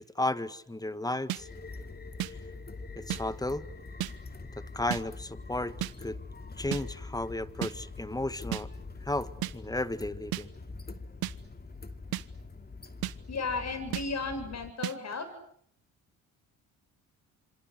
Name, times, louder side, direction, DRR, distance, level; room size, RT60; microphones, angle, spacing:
voice 1, 0.0-1.5 2.9-3.7 4.6-6.2 6.6-8.7 9.0-10.5, left 1 dB, 10° left, 14 dB, 1.6 m, -34 dB
sound 1, 1.3-14.7, left 3 dB, 25° left, 2.5 m, -44 dB
sound 2, 1.3-1.4 2.2-2.3 3.1-3.2 4.0-4.1 4.9-5.0 5.8-5.9 6.7-6.8 7.6-7.7 8.5-8.6 9.4-9.5 10.3-10.4 11.2-11.3 12.1-12.2 13.0-13.1 13.9-14.0 14.8-14.9, right 15 dB, 75° right, 1.2 m, -32 dB
voice 2, 13.3-15.3, left 4 dB, 45° left, 11 dB, 7.9 m, -34 dB
26.5 x 26.0 x 8.2 m, 0.66 s
supercardioid pair, 70°, 37 cm